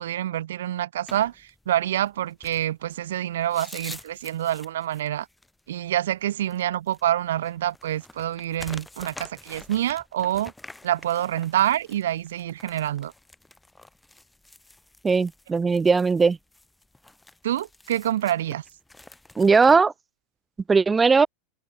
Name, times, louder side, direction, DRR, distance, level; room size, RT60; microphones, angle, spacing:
voice 1, 0.0-5.3 5.7-10.5 10.8-13.1 17.4-18.6, right 12 dB, 75° right, 0.3 m, -27 dB
sound 1, 1.1-19.8, left 2 dB, 5° left, 4.2 m, -47 dB
voice 2, 15.0-16.4 19.4-19.9 20.7-21.3, right 4 dB, 20° right, 0.5 m, -18 dB
hypercardioid pair, 95°, 0 cm